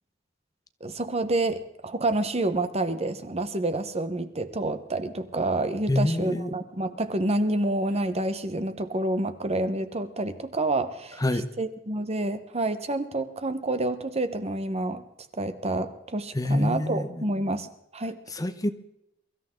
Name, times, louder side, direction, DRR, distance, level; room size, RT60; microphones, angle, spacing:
voice 1, 0.8-15.0 15.4-17.7 17.9-18.2, right 2 dB, 35° right, 10 dB, 1.1 m, -28 dB
voice 2, 5.9-6.6 11.2-11.5 16.3-17.2 18.3-18.7, left 1 dB, 20° left, 10 dB, 0.8 m, -26 dB
23.5 x 14.0 x 3.8 m, 0.80 s
head